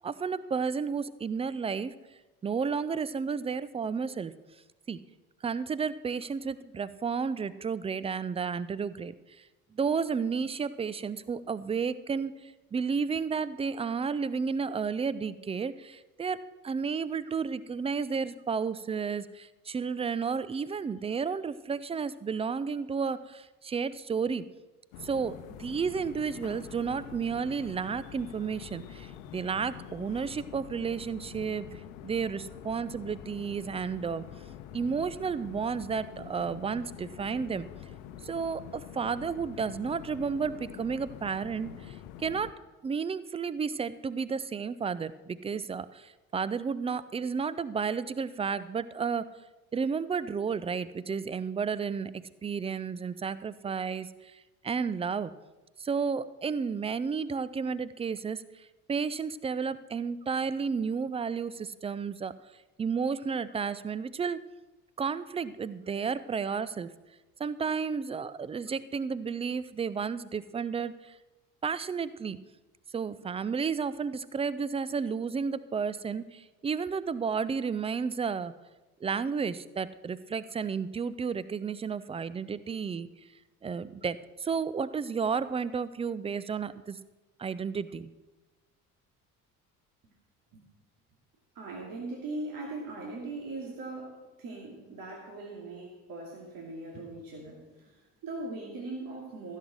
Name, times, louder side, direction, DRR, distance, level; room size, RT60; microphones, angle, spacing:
voice 1, 0.0-1.9 2.4-4.3 4.9-5.0 5.4-9.1 9.7-24.4 25.0-31.7 32.0-34.2 34.7-37.6 38.2-42.5 42.8-49.3 49.7-54.4 54.6-55.3 55.8-58.4 58.9-62.3 62.8-64.4 65.0-66.9 67.4-71.1 71.6-72.4 72.9-78.5 79.0-83.1 83.6-87.0 87.4-88.1, right 5 dB, 15° right, 17 dB, 0.5 m, -32 dB
sound 1, 24.9-42.5, left 10 dB, 60° left, 0.9 m, -46 dB
voice 2, 91.5-99.6, right 2 dB, 50° right, -2 dB, 2.7 m, -40 dB
15.0 x 7.4 x 6.4 m, 1.1 s
figure-of-eight pair, 55°, 44 cm